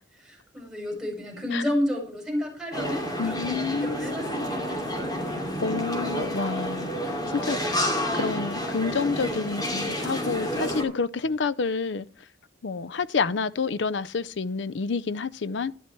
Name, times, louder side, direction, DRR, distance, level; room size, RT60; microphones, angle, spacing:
voice 1, 0.2-5.4, left 1 dB, 5° right, 5.1 m, -32 dB
sound 1, 2.7-10.8, equal, 20° left, 2.7 m, -29 dB
voice 2, 3.2-4.5 5.6-7.6 8.1-12.1 12.6-15.7, left 4 dB, 70° left, 0.6 m, -29 dB
11.5 x 11.0 x 4.5 m
head